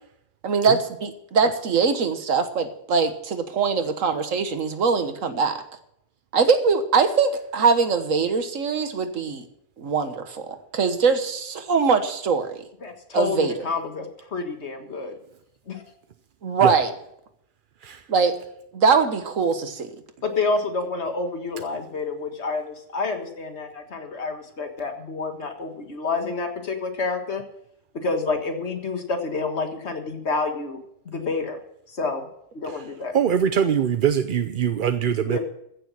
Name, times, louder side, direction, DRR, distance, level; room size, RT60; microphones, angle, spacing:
voice 1, 0.4-5.6 6.3-9.4 9.8-12.6 13.1-13.5 16.4-16.9 18.1-18.3 18.7-19.9, right 5 dB, 90° right, 9 dB, 1.7 m, -22 dB
voice 2, 12.8-15.1 15.7-15.8 20.2-27.4 27.9-31.6 31.9-32.2 32.5-33.1 35.3-35.4, left 3 dB, 60° left, 5 dB, 1.9 m, -28 dB
voice 3, 33.1-35.4, right 8 dB, 55° right, 9 dB, 0.7 m, -23 dB
15.0 x 6.9 x 7.4 m, 0.75 s
omnidirectional pair, 1.3 m